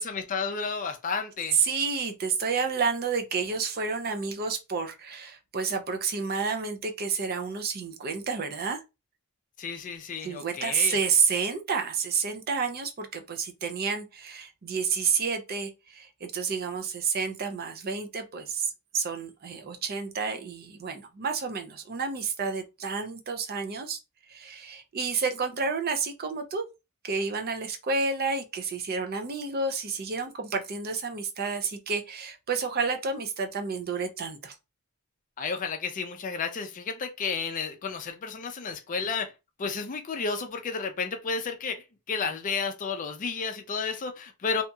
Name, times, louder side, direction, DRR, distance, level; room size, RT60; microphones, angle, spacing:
voice 1, 0.0-1.6 9.6-11.0 35.4-39.3 39.6-44.6, left 5 dB, 35° left, 0.4 m, -32 dB
voice 2, 1.5-8.8 10.2-24.0 24.3-26.6 27.0-34.6, right 5 dB, 45° right, 0.4 m, -30 dB
2.8 x 2.7 x 2.2 m
head